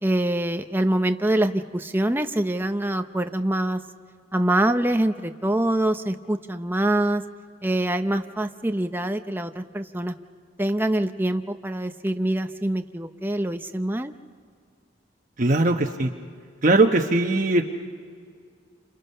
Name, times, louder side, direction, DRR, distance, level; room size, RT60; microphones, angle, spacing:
voice 1, 0.0-3.8 4.3-7.2 7.6-10.2 10.6-14.1, right 1 dB, 10° right, 7 dB, 0.7 m, -24 dB
voice 2, 15.4-16.1 16.6-17.6, right 2 dB, 45° right, 2 dB, 1.1 m, -20 dB
30.0 x 27.0 x 5.6 m, 2.1 s
head